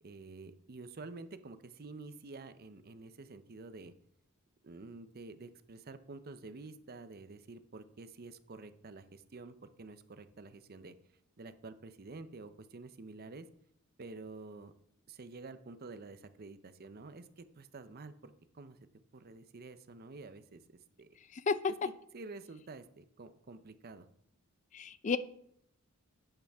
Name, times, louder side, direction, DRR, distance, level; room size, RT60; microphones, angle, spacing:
voice 1, 0.0-3.9 4.6-10.9 11.4-13.5 14.0-14.7 15.1-18.8 19.1-21.1 21.8-24.1, right 3 dB, 45° right, 12 dB, 0.6 m, -49 dB
voice 2, 24.7-25.2, left 5 dB, 35° left, 15 dB, 0.4 m, -32 dB
11.0 x 8.9 x 3.5 m, 0.72 s
head